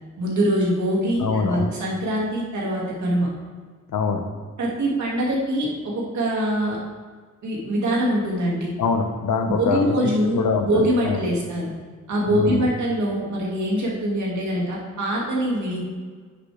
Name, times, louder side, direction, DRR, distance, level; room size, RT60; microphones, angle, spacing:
voice 1, 0.2-3.3 4.6-6.8 7.4-8.7 9.6-10.4 10.6-11.7 12.1-15.8, equal, 65° right, -4 dB, 2.3 m, -23 dB
voice 2, 1.2-1.7 3.9-4.2 8.8-9.9 10.3-11.2 12.3-12.6, left 5 dB, 90° left, 5 dB, 1.0 m, -24 dB
9.9 x 6.7 x 3.5 m, 1.5 s
wide cardioid pair, 180°, 31 cm